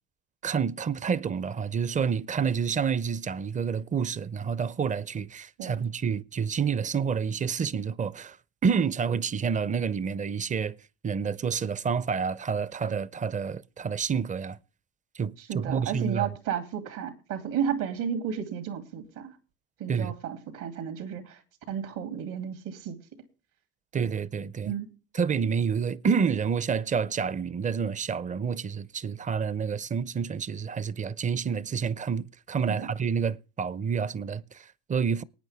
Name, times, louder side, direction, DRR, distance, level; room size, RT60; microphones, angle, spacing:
voice 1, 0.4-8.4 8.6-10.8 11.0-14.6 15.1-16.3 19.9-20.1 23.9-24.7 25.1-35.2, right 6 dB, 25° right, 0.5 m, -28 dB
voice 2, 15.5-19.3 19.8-21.4 21.7-23.0 24.6-24.9 32.7-32.9, right 8 dB, 75° right, 2.6 m, -32 dB
19.5 x 9.1 x 3.4 m
supercardioid pair, 85°, 32 cm